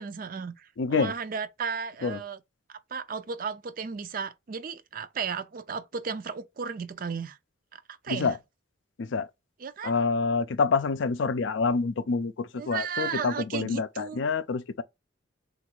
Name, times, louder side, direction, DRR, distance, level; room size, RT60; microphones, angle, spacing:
voice 1, 0.0-2.4 2.7-7.4 7.7-8.4 9.6-9.9 12.5-14.2, right 6 dB, 45° right, 0.4 m, -35 dB
voice 2, 0.8-1.1 2.0-2.2 8.1-8.4 9.0-9.3 9.8-14.8, left 4 dB, 70° left, 0.4 m, -27 dB
3.8 x 2.5 x 4.5 m
head